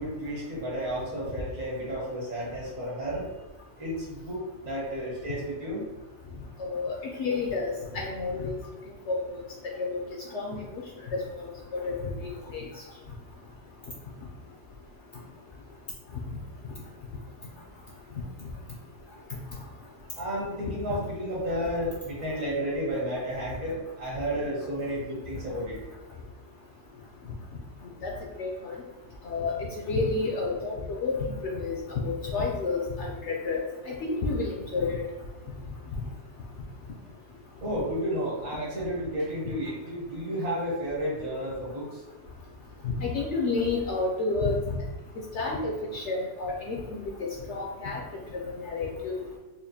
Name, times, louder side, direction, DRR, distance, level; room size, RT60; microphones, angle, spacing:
voice 1, 0.0-3.3 3.8-5.9 20.2-25.8 37.6-42.0, equal, 60° right, -5 dB, 1.7 m, -32 dB
voice 2, 6.6-8.5 9.1-9.2 9.8-10.0 10.3-10.6 11.1-11.5 11.8-12.6 28.0-28.1 28.4-28.7 29.2-29.5 29.9-31.1 31.4-31.8 32.0-35.0 42.8-44.6 45.3-47.0 47.5-48.0 48.6-49.2, left 3 dB, 65° left, -2 dB, 0.7 m, -30 dB
4.2 x 2.5 x 2.7 m, 1.2 s
omnidirectional pair, 1.6 m